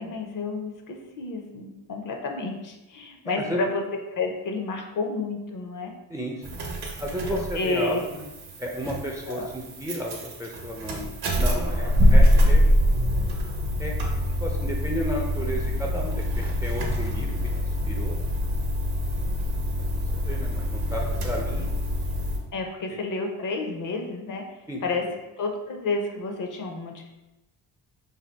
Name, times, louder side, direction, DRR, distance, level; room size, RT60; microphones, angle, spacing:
voice 1, 0.0-3.8 4.1-5.9 7.6-8.0 9.3-9.5 22.5-24.4 24.8-25.1 25.4-27.1, left 3 dB, 50° left, 3 dB, 0.6 m, -30 dB
voice 2, 3.3-3.7 6.1-6.6 7.0-8.3 8.6-12.6 13.8-13.9 14.4-18.3 20.1-21.7 24.7-24.8, equal, 10° right, -1 dB, 0.4 m, -33 dB
sound 1, 6.4-22.4, equal, 70° right, 0.8 m, -24 dB
2.7 x 2.2 x 3.3 m, 1.0 s
cardioid pair, 75°, 40 cm